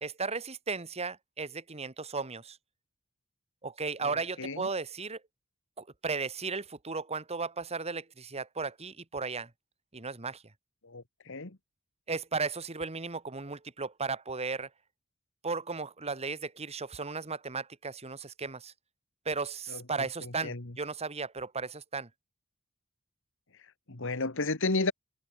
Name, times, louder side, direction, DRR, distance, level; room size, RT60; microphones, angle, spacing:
voice 1, 0.0-2.6 3.6-5.2 5.8-9.5 9.9-10.4 12.1-14.7 15.4-18.7 19.2-22.1, right 4 dB, 30° right, 1.6 m, -35 dB
voice 2, 4.0-4.7 10.8-11.6 19.7-19.8 20.2-20.8 23.6-24.9, left 3 dB, 65° left, 2.0 m, -33 dB
head